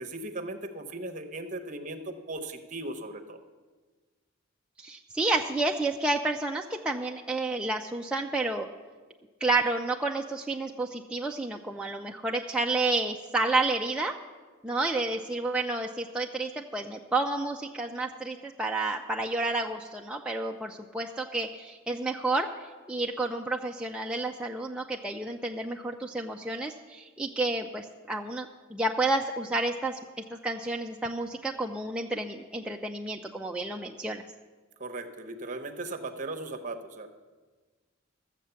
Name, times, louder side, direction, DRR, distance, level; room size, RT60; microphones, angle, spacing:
voice 1, 0.0-3.4 34.8-37.1, right 2 dB, 35° right, 6 dB, 0.9 m, -37 dB
voice 2, 4.8-8.7 9.4-14.1 14.6-22.5 22.9-30.0 30.3-34.2, right 2 dB, 5° right, 0 dB, 0.4 m, -30 dB
14.0 x 7.4 x 7.0 m, 1.4 s
head